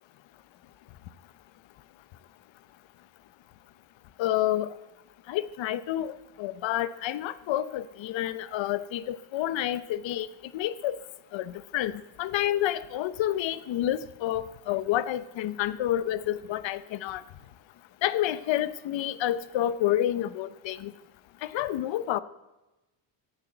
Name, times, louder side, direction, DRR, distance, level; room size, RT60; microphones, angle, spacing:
voice 1, 4.2-4.7 5.3-10.3 10.5-11.0 11.3-11.9 12.2-17.2 18.0-20.9 21.4-22.2, left 12 dB, 65° left, 16 dB, 0.9 m, -29 dB
16.5 x 9.2 x 7.8 m, 1.0 s
cardioid pair, 120°, 49 cm